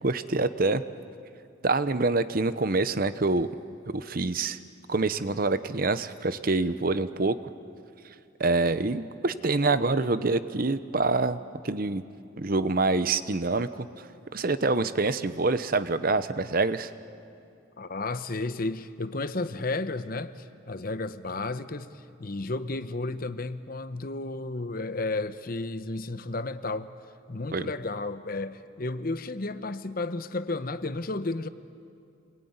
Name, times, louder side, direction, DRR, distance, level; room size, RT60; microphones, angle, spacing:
voice 1, 0.0-0.8 1.6-3.5 3.9-4.6 4.9-7.4 8.4-11.4 11.6-12.0 12.4-13.9 14.3-16.9 27.5-27.7, right 3 dB, 45° right, 0.8 m, -26 dB
voice 2, 17.8-26.9 27.3-31.5, left 2 dB, 45° left, 0.9 m, -33 dB
28.0 x 21.5 x 9.6 m
head